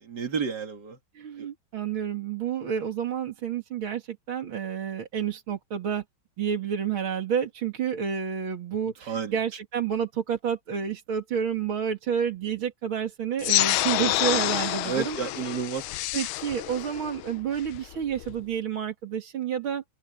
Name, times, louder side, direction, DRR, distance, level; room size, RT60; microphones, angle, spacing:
voice 1, 0.0-1.0 1.4-1.5 9.1-9.3 14.8-15.8, right 6 dB, 50° right, 2.8 m, -31 dB
voice 2, 1.1-6.0 6.4-15.2 16.1-19.8, right 8 dB, 70° right, 3.0 m, -29 dB
sound 1, 13.4-18.4, left 16 dB, 80° left, 1.4 m, -28 dB
omnidirectional pair, 2.4 m